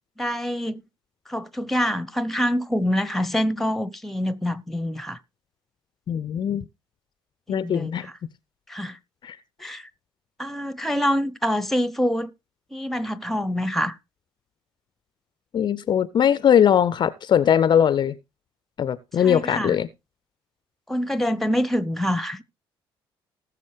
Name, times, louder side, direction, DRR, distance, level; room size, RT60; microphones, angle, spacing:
voice 1, 0.2-0.8 1.3-5.2 7.5-8.1 8.7-9.0 9.6-9.8 10.4-12.3 12.7-14.0 19.2-19.7 20.9-22.4, equal, ahead, 0.8 m, -25 dB
voice 2, 6.1-6.7 7.5-8.1 9.2-9.4 15.5-18.2 18.8-19.9, left 9 dB, 35° left, 0.5 m, -20 dB
19.5 x 6.8 x 3.3 m
figure-of-eight pair, 50°, 13 cm